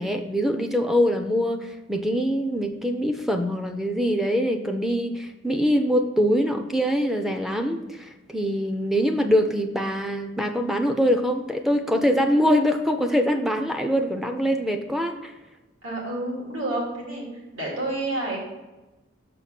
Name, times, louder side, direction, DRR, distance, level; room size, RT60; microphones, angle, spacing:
voice 1, 0.0-15.3, equal, ahead, 6 dB, 0.4 m, -23 dB
voice 2, 15.8-17.3 17.5-18.4, right 2 dB, 85° right, -3 dB, 2.6 m, -29 dB
6.4 x 4.6 x 5.8 m, 1.1 s
head